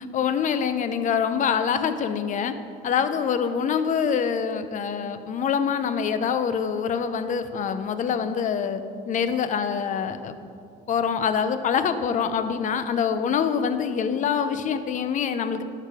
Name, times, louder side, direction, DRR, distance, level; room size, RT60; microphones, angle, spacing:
voice 1, 0.1-2.5 2.8-10.3 10.9-15.6, left 7 dB, 50° left, 10 dB, 0.6 m, -25 dB
11.5 x 4.8 x 4.8 m, 2.3 s
cardioid pair, 110°, 17 cm